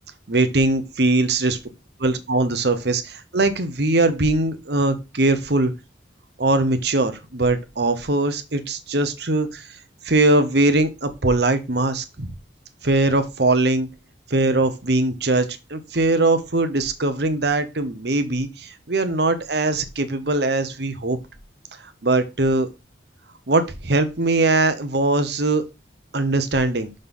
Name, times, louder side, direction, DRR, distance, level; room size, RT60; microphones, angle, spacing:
voice 1, 0.3-1.6 2.0-5.7 6.4-9.6 10.1-12.3 12.8-13.9 14.3-21.2 22.0-22.7 23.5-25.6 26.1-26.9, right 2 dB, 60° right, 9 dB, 1.0 m, -21 dB
6.5 x 4.0 x 5.4 m, 0.26 s
head